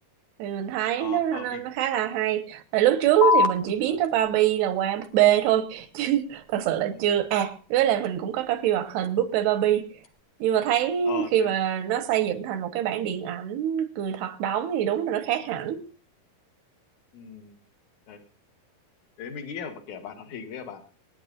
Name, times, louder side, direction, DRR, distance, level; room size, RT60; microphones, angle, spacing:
voice 1, 0.4-10.0 10.4-15.8, right 11 dB, 85° right, 3.2 m, -24 dB
voice 2, 1.0-1.6 3.8-4.0 11.0-11.5 17.1-17.6 18.1-18.2 19.2-20.8, left 7 dB, 55° left, 2.7 m, -38 dB
sound 1, 3.2-10.2, left 5 dB, 80° left, 1.4 m, -32 dB
26.0 x 10.0 x 2.5 m
omnidirectional pair, 4.6 m